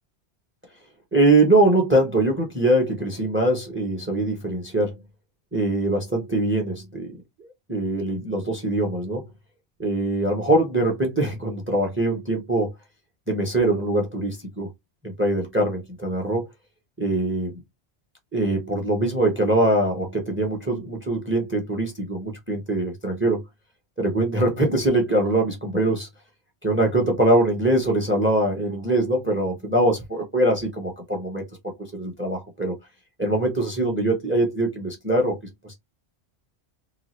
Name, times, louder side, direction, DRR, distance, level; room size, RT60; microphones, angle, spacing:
voice 1, 1.1-4.9 5.5-7.1 7.4-9.3 9.8-12.7 13.3-14.7 15.0-16.4 17.0-17.5 18.3-23.4 24.0-26.1 26.6-31.4 31.9-32.7 33.2-35.4 35.6-35.7, right 1 dB, 15° right, 0.7 m, -22 dB
2.8 x 2.2 x 3.0 m
omnidirectional pair, 1.1 m